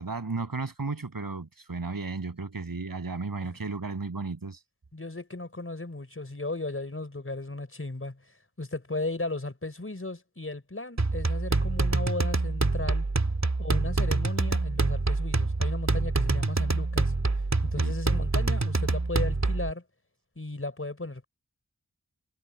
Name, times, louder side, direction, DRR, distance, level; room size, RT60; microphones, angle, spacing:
voice 1, 0.0-4.6 17.8-17.9, right 3 dB, 80° right, 7.8 m, -34 dB
voice 2, 4.9-8.2 8.6-13.1 13.6-17.1 17.6-19.8 20.4-21.2, left 2 dB, 40° left, 4.8 m, -36 dB
sound 1, 11.0-19.7, right 3 dB, 50° right, 2.6 m, -26 dB
wide cardioid pair, 50°, 34 cm